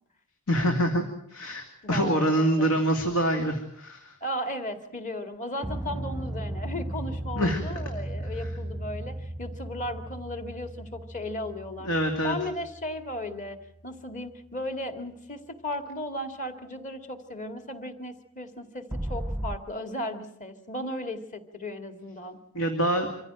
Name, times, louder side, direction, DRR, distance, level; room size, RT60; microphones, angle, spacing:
voice 1, 0.5-1.0 1.3-4.2 7.4-7.6 11.8-12.4 22.5-23.1, equal, 85° left, 4 dB, 2.5 m, -25 dB
voice 2, 1.8-2.8 4.2-11.9 12.2-13.6 13.8-22.4, left 1 dB, 35° left, 8 dB, 2.3 m, -36 dB
sound 1, 5.6-14.0 18.9-19.6, right 1 dB, 5° right, 0.8 m, -36 dB
25.5 x 15.5 x 9.0 m, 0.70 s
head